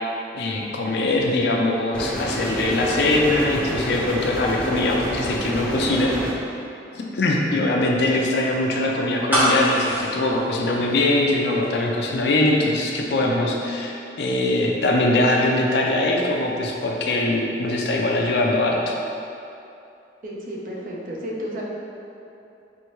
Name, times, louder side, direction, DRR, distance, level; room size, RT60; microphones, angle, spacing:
voice 1, 0.3-6.1 6.9-18.9, left 2 dB, 65° left, -1 dB, 0.5 m, -22 dB
sound 1, 1.9-6.3, equal, 5° left, 0.3 m, -28 dB
sound 2, 9.3-11.3 11.6-11.7, equal, 10° right, 0.8 m, -23 dB
voice 2, 20.2-21.6, equal, 50° right, -4 dB, 0.6 m, -32 dB
4.5 x 2.7 x 3.0 m, 2.7 s
head